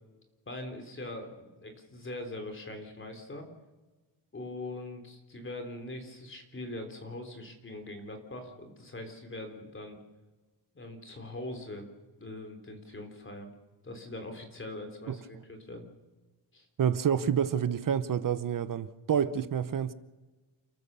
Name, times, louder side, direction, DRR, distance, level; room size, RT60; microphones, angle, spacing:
voice 1, 0.5-3.5 4.3-10.0 10.7-11.9 12.2-13.5 13.8-15.9 16.5-16.7, left 2 dB, 25° left, 3.6 m, -42 dB
voice 2, 16.8-19.9, right 8 dB, 40° right, 0.9 m, -28 dB
29.5 x 14.0 x 6.9 m
wide cardioid pair, 160°, 48 cm